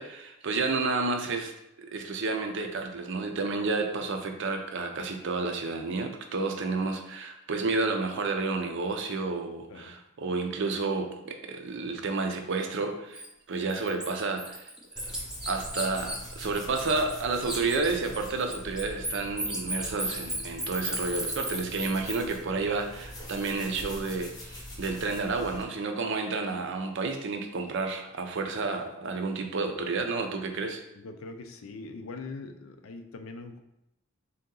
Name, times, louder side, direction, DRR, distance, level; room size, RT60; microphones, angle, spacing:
voice 1, 0.0-1.5 1.8-14.7 15.5-30.8, right 3 dB, 60° right, 5 dB, 0.5 m, -31 dB
Bird, 13.1-13.3 13.7-17.2 17.4-22.2, right 1 dB, 5° right, 0.5 m, -34 dB
sound 1, 15.0-25.6, left 1 dB, 20° left, 0.8 m, -44 dB
voice 2, 31.0-33.6, left 3 dB, 70° left, 7 dB, 0.4 m, -42 dB
3.8 x 2.8 x 3.7 m, 0.85 s
head